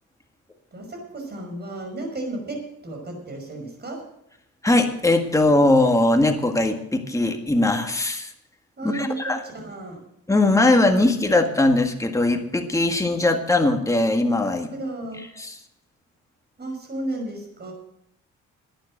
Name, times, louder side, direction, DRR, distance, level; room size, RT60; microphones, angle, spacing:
voice 1, 0.7-2.6 2.8-4.0 8.8-10.0 14.7-15.2 16.6-17.7, right 2 dB, 35° right, 2 dB, 5.8 m, -33 dB
voice 2, 4.6-8.3 8.8-9.4 10.3-14.7 15.4-15.6, left 2 dB, 10° left, 5 dB, 1.8 m, -20 dB
11.5 x 9.8 x 7.6 m, 0.76 s
cardioid pair, 90°, 30 cm